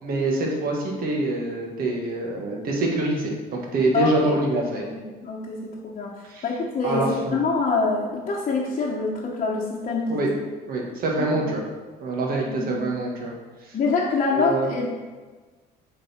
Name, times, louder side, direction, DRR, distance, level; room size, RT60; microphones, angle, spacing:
voice 1, 0.0-4.8 6.3-6.4 6.8-7.4 10.1-10.3 10.7-11.6 12.0-13.3 13.6-13.8 14.3-14.7, right 2 dB, 60° right, -2 dB, 1.6 m, -25 dB
voice 2, 3.9-4.3 4.8-4.9 5.2-6.1 6.4-10.3 11.2-11.4 12.3-12.8 13.7-14.9, left 4 dB, 40° left, -5 dB, 1.0 m, -25 dB
7.4 x 4.1 x 4.3 m, 1.3 s
cardioid pair, 110°, 17 cm